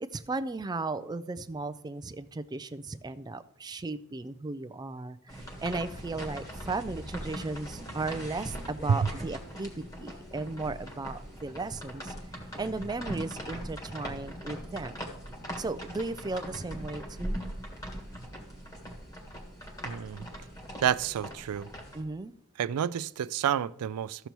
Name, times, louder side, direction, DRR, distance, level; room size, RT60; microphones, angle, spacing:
voice 1, 0.0-5.4 5.6-9.7 10.0-12.1 12.6-15.1 15.6-17.4 21.9-22.3, right 3 dB, 20° right, 0.4 m, -36 dB
sound 1, 5.3-22.0, equal, 15° left, 1.6 m, -40 dB
voice 2, 19.8-20.3 20.8-21.7 22.6-24.3, right 8 dB, 85° right, 0.4 m, -29 dB
14.0 x 6.8 x 3.0 m
head